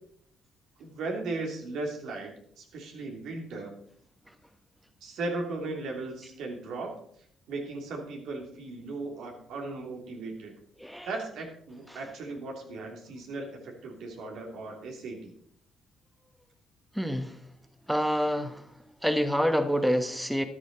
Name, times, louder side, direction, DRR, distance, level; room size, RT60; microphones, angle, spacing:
voice 1, 0.8-3.7 5.0-7.0 7.5-10.6 11.0-15.3, right 3 dB, 80° right, 2 dB, 2.9 m, -37 dB
voice 2, 16.9-17.4 17.9-18.7 19.0-20.4, equal, ahead, 8 dB, 1.1 m, -27 dB
13.0 x 11.0 x 4.0 m, 0.64 s
cardioid pair, 90°, 0 cm